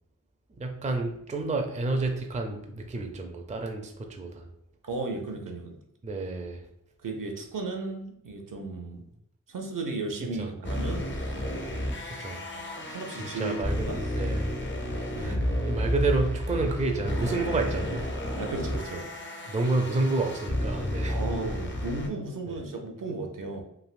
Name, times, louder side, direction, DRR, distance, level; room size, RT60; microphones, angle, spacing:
voice 1, 0.6-4.5 6.0-6.6 10.2-10.5 12.2-12.4 13.2-13.9 14.1-14.5 15.7-18.1 19.5-21.2 22.5-22.6, right 3 dB, 20° right, 4 dB, 0.4 m, -29 dB
voice 2, 4.8-5.8 7.0-9.0 9.5-11.1 12.8-14.1 15.1-15.6 18.4-19.1 21.1-23.6, right 3 dB, 70° right, 3 dB, 0.6 m, -35 dB
sound 1, 10.6-22.1, left 1 dB, 35° left, 0.5 m, -31 dB
3.3 x 2.5 x 2.4 m, 0.78 s
wide cardioid pair, 50°, 33 cm